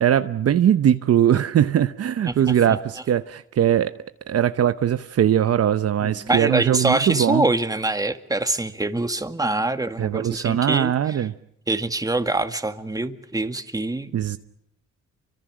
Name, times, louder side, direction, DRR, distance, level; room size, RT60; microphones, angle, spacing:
voice 1, 0.0-3.9 4.3-7.5 10.0-11.3 14.1-14.4, right 10 dB, 55° right, 11 dB, 0.9 m, -20 dB
voice 2, 6.0-11.2 11.7-14.2, right 2 dB, 10° right, 8 dB, 1.9 m, -24 dB
29.5 x 25.0 x 6.3 m, 0.76 s
cardioid pair, 90°, 30 cm